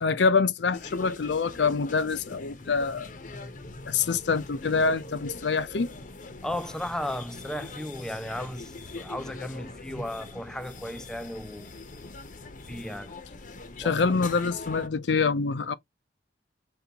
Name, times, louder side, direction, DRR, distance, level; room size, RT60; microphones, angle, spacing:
voice 1, 0.0-3.1 3.9-5.9 13.8-15.7, left 4 dB, 85° left, 0.5 m, -25 dB
sound 1, 0.7-14.9, left 3 dB, 50° left, 0.7 m, -42 dB
voice 2, 6.4-11.7 12.7-13.1 13.8-14.0, left 1 dB, 5° left, 0.3 m, -35 dB
5.4 x 3.4 x 2.8 m
head